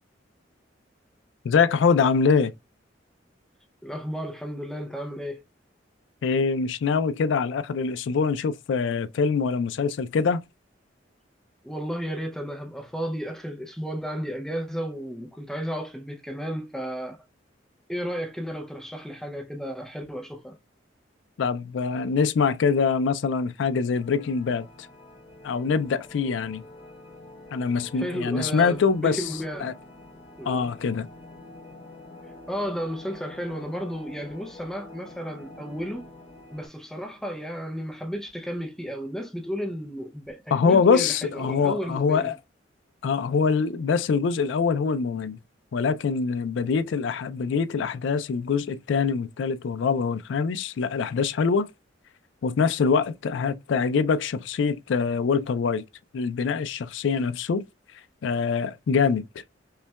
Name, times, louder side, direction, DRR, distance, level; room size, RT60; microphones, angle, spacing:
voice 1, 1.4-2.5 6.2-10.4 21.4-24.9 25.4-26.6 27.5-29.2 29.6-29.7 30.5-31.1 40.5-42.4 43.0-45.4 45.7-51.7 52.4-55.8 56.1-57.6 58.2-59.2, left 5 dB, 75° left, 0.3 m, -24 dB
voice 2, 3.8-5.4 11.6-17.2 17.9-20.6 28.0-29.7 30.4-30.7 32.5-36.1 36.5-42.3, equal, ahead, 0.4 m, -33 dB
sound 1, 23.9-36.7, left 2 dB, 30° left, 1.3 m, -47 dB
5.4 x 2.2 x 2.2 m
head